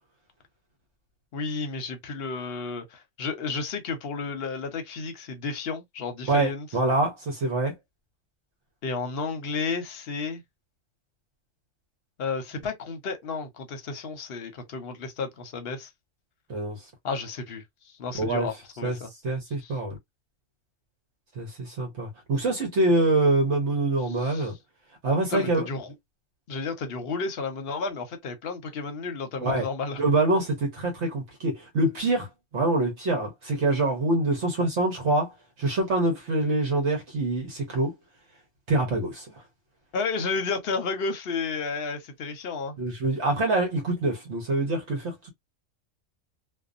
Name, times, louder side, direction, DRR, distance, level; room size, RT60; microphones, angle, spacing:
voice 1, 1.3-6.7 8.8-10.4 12.2-15.9 17.0-19.1 19.6-19.8 24.1-24.5 25.3-25.9 26.5-30.0 39.9-42.8, left 4 dB, 55° left, 0.8 m, -32 dB
voice 2, 6.3-7.7 16.5-16.8 18.1-18.5 18.8-19.0 19.2-19.9 21.4-24.5 25.0-25.7 29.4-29.7 30.0-32.3 32.5-37.9 38.7-39.3 42.8-45.3, right 2 dB, 60° right, 1.1 m, -25 dB
2.6 x 2.3 x 2.4 m
omnidirectional pair, 1.4 m